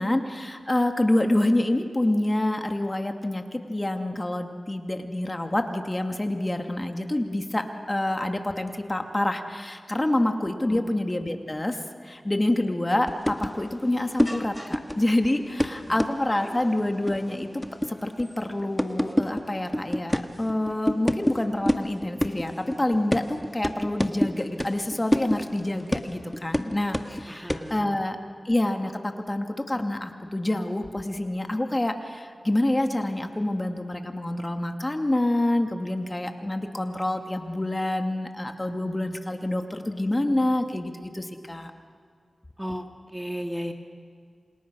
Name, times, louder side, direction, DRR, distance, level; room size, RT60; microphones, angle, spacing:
voice 1, 0.0-11.8 12.0-28.2 28.4-41.7, left 1 dB, 25° left, 5 dB, 2.5 m, -27 dB
sound 1, 13.1-21.4 21.7-27.2 27.5-27.7, equal, 10° left, 1.7 m, -28 dB
voice 2, 27.3-28.0 42.6-42.9 43.1-43.7, equal, 10° right, 5 dB, 2.1 m, -34 dB
28.0 x 27.5 x 6.4 m, 2.2 s
cardioid pair, 45°, 0 cm